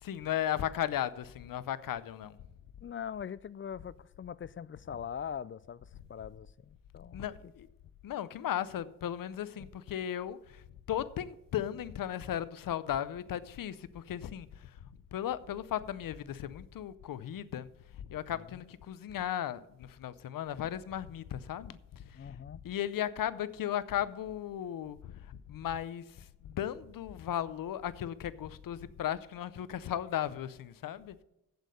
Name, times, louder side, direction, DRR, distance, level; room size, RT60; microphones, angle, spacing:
voice 1, 0.0-2.4 7.1-7.7 8.0-10.6 10.9-17.7 18.0-22.4 22.6-31.2, left 10 dB, 85° left, 0.6 m, -36 dB
voice 2, 2.8-7.2 9.6-9.7 18.5-18.6 22.2-22.6, left 8 dB, 40° left, 0.4 m, -42 dB
8.4 x 8.0 x 6.6 m
cardioid pair, 90°, 33 cm